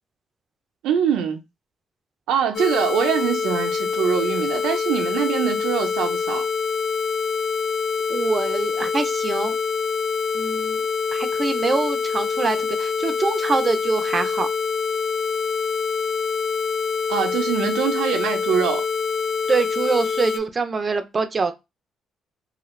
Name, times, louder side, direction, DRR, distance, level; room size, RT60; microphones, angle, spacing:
voice 1, 0.8-1.4 2.3-6.4 17.1-18.8, right 8 dB, 90° right, 0.5 m, -23 dB
sound 1, 2.5-20.4, left 5 dB, 55° left, 0.6 m, -25 dB
voice 2, 8.1-9.6 10.3-10.8 11.1-14.5 19.5-21.5, right 4 dB, 35° right, 0.4 m, -24 dB
2.7 x 2.4 x 3.0 m
cardioid pair, 90°, 0 cm